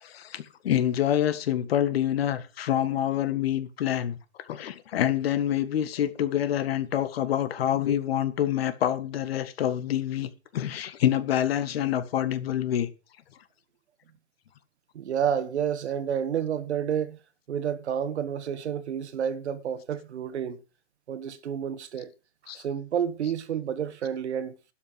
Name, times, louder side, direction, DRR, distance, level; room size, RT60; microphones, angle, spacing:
voice 1, 0.0-4.2 4.5-12.9 22.5-22.6 23.2-23.3, left 11 dB, 55° left, 1.8 m, -27 dB
voice 2, 15.0-17.2 17.5-20.6 21.1-22.1 22.5-24.5, right 8 dB, 65° right, 1.7 m, -30 dB
12.5 x 6.1 x 7.7 m
hypercardioid pair, 135°, 37 cm